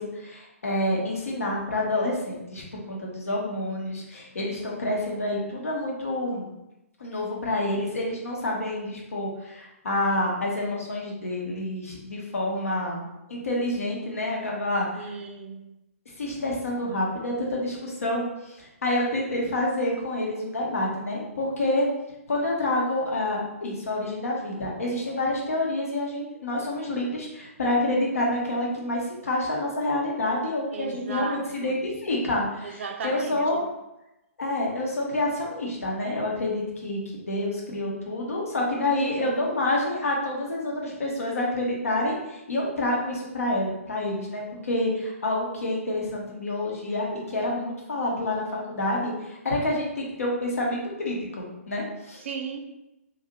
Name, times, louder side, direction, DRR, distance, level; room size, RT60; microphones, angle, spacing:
voice 1, 0.0-6.5 7.0-15.0 16.2-21.9 22.3-33.7 34.4-52.2, left 1 dB, 70° left, -2 dB, 0.9 m, -28 dB
voice 2, 15.0-15.6 30.7-31.8 32.6-33.6 39.0-39.6 52.2-52.6, right 5 dB, 55° right, 5 dB, 0.4 m, -36 dB
2.6 x 2.4 x 2.8 m, 0.91 s
figure-of-eight pair, 125°, 8 cm